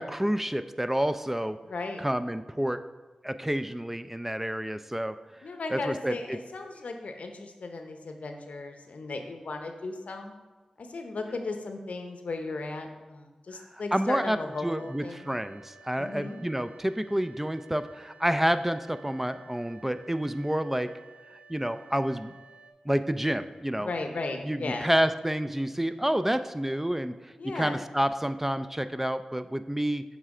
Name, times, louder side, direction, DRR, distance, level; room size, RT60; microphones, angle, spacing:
voice 1, 0.0-1.6 2.0-2.8 3.2-5.1 5.7-6.4 13.9-14.4 14.6-20.9 21.5-22.3 22.9-23.9 24.4-27.1 27.6-30.0, equal, 10° right, 11 dB, 0.3 m, -29 dB
voice 2, 1.6-2.0 5.4-10.3 10.8-15.3 16.0-16.4 23.8-24.9 27.4-27.8, left 3 dB, 80° left, 5 dB, 0.7 m, -36 dB
sound 1, 14.5-22.7, right 4 dB, 80° right, 0.7 m, -54 dB
7.3 x 3.3 x 4.8 m, 1.2 s
cardioid pair, 40°, 2 cm